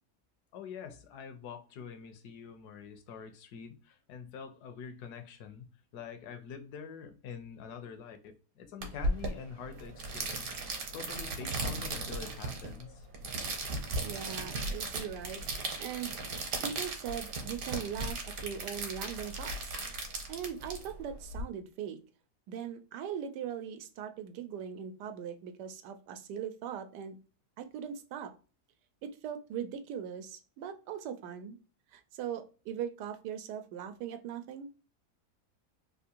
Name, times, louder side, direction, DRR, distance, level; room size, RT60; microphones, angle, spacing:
voice 1, 0.5-10.5 10.9-13.1, left 7 dB, 75° left, 1.2 m, -46 dB
sound 1, 8.8-21.4, right 2 dB, 65° right, 1.3 m, -37 dB
voice 2, 14.0-16.2 16.6-19.8 20.3-22.0 22.5-27.2 27.6-28.3 29.0-31.6 31.9-34.7, right 8 dB, 90° right, 1.2 m, -40 dB
3.6 x 2.5 x 2.7 m
omnidirectional pair, 1.7 m